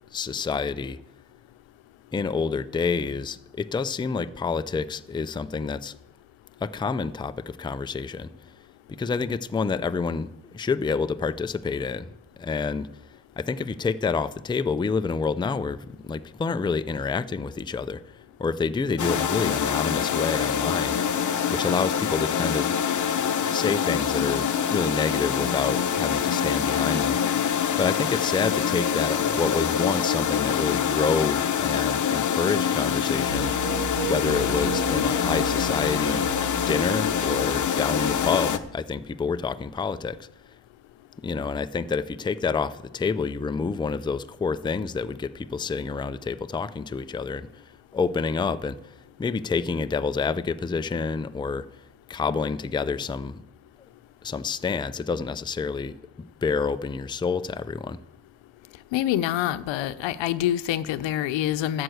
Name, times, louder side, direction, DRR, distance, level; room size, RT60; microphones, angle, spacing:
voice 1, 0.1-1.0 2.1-6.0 6.6-8.3 9.0-12.1 12.4-12.9 13.4-18.0 18.4-21.0 21.5-22.7 23.5-27.4 27.8-33.5 34.1-36.3 36.7-40.2 41.2-47.5 47.9-48.9 49.2-51.7 52.1-53.4 54.2-55.9 56.4-58.0, left 5 dB, 10° left, 0.4 m, -28 dB
sound 1, 19.0-38.6, left 8 dB, 45° left, 0.9 m, -25 dB
sound 2, 33.3-38.6, right 1 dB, 70° right, 4.6 m, -34 dB
voice 2, 58.9-61.8, left 12 dB, 85° left, 0.8 m, -26 dB
12.5 x 7.8 x 7.9 m
cardioid pair, 100°, 44 cm